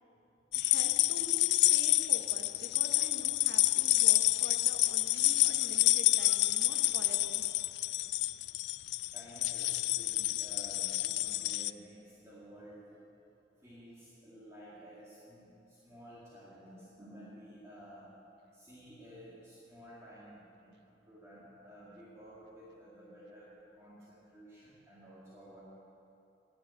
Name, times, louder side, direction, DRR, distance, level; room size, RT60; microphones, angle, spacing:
sound 1, 0.5-11.7, left 18 dB, 65° left, 0.3 m, -28 dB
voice 1, 0.5-7.4, right 1 dB, 60° right, 4 dB, 1.2 m, -47 dB
voice 2, 9.1-13.1 13.6-18.1 18.5-25.6, equal, 15° right, -9 dB, 2.2 m, -53 dB
11.5 x 8.9 x 8.6 m, 2.8 s
head